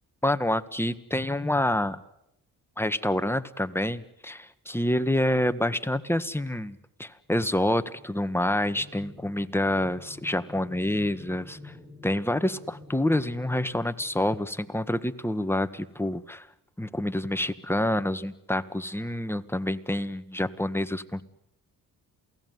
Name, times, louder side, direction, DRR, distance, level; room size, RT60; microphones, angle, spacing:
voice 1, 0.2-2.0 2.8-11.7 12.0-16.4 16.8-21.2, left 1 dB, 5° left, 10 dB, 1.6 m, -27 dB
sound 1, 8.1-15.1, left 2 dB, 10° right, 6.1 m, -49 dB
28.0 x 18.0 x 9.5 m, 0.83 s
cardioid pair, 65°, 38 cm